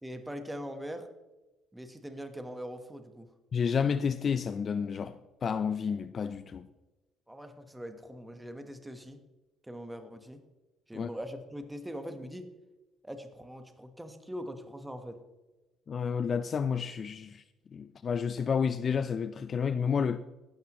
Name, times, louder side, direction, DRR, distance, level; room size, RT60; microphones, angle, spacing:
voice 1, 0.0-1.1 1.7-3.3 7.3-9.2 9.6-10.4 10.9-12.5 13.0-15.2, equal, 5° right, 1.2 m, -42 dB
voice 2, 3.5-6.7 10.9-11.1 15.9-17.4 17.7-20.2, left 6 dB, 40° left, 0.4 m, -30 dB
15.5 x 12.0 x 3.0 m
cardioid pair, 125°, 0 cm